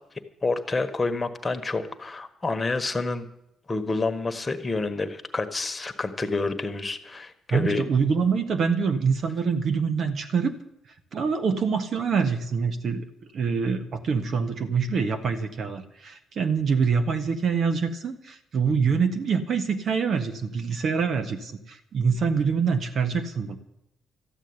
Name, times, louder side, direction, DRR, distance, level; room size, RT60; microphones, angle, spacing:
voice 1, 0.4-3.3 3.7-7.8, left 3 dB, 25° left, 9 dB, 1.4 m, -28 dB
voice 2, 7.5-10.6 11.1-13.0 13.3-23.6, right 5 dB, 55° right, 9 dB, 1.5 m, -25 dB
13.5 x 8.4 x 9.7 m, 0.80 s
cardioid pair, 90°, 0 cm